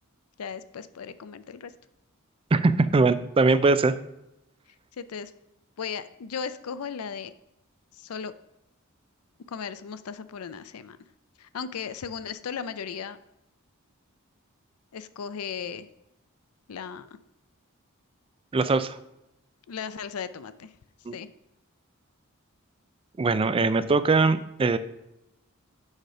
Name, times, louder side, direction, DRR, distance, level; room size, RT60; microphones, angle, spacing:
voice 1, 0.4-1.7 5.0-5.3 5.8-7.3 8.0-8.3 9.5-11.0 11.4-13.2 14.9-15.9 16.7-17.2 19.7-20.7 21.1-21.3, left 6 dB, 90° left, 14 dB, 0.5 m, -36 dB
voice 2, 2.5-3.9 18.5-19.0 21.1-21.2 23.2-24.8, right 3 dB, 25° right, 13 dB, 0.4 m, -21 dB
6.5 x 4.9 x 5.4 m, 0.89 s
head